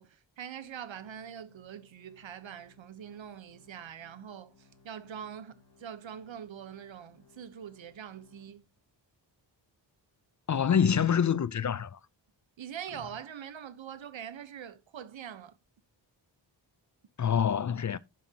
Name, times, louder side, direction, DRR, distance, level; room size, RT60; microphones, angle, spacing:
voice 1, 0.0-8.6 12.6-15.6, right 8 dB, 80° right, 1.0 m, -44 dB
Organ, 0.9-9.0 9.4-9.5 10.1-10.2, left 4 dB, 65° left, 3.5 m, -63 dB
voice 2, 10.5-12.0 17.2-18.0, left 8 dB, 40° left, 0.5 m, -26 dB
10.5 x 7.3 x 2.8 m
wide cardioid pair, 100°, 45 cm